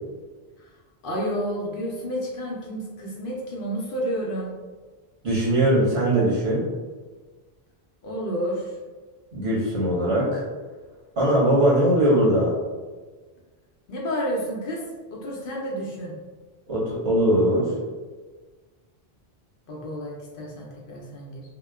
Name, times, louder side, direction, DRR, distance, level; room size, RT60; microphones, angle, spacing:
voice 1, 1.0-4.5 8.0-8.8 13.9-14.8 15.1-16.1 19.7-21.4, equal, 65° left, -2 dB, 0.7 m, -30 dB
voice 2, 5.2-6.7 9.3-10.4 11.2-12.5 16.7-17.7, right 1 dB, 75° right, -6 dB, 1.2 m, -20 dB
2.9 x 2.0 x 2.2 m, 1.4 s
omnidirectional pair, 1.1 m